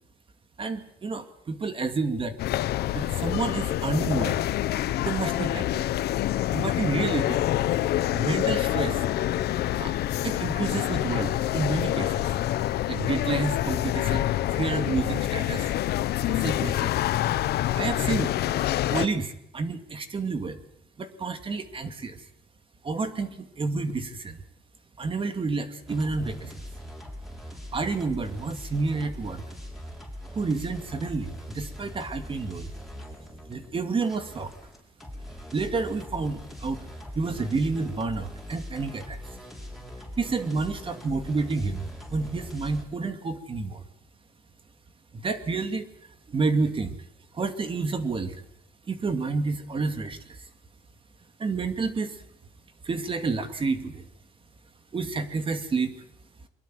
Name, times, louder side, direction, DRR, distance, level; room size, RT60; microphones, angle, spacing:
voice 1, 0.6-2.4 2.9-4.4 5.0-5.8 6.5-7.4 8.1-9.0 9.8-9.9 10.2-12.3 12.9-15.7 16.3-16.9 17.7-20.6 21.0-22.2 22.8-24.4 25.0-26.5 27.7-29.4 30.3-32.7 33.5-34.5 35.5-36.8 37.1-39.2 40.2-43.8 45.1-45.9 46.3-47.0 47.3-48.4 48.9-50.5 51.4-52.2 52.8-54.0 54.9-55.9, right 4 dB, 30° right, 8 dB, 2.4 m, -29 dB
sound 1, 2.4-19.1, left 13 dB, 70° left, 1.2 m, -26 dB
sound 2, 25.9-42.9, equal, ahead, 7.2 m, -41 dB
23.5 x 22.5 x 7.8 m, 0.74 s
cardioid pair, 110°, 17 cm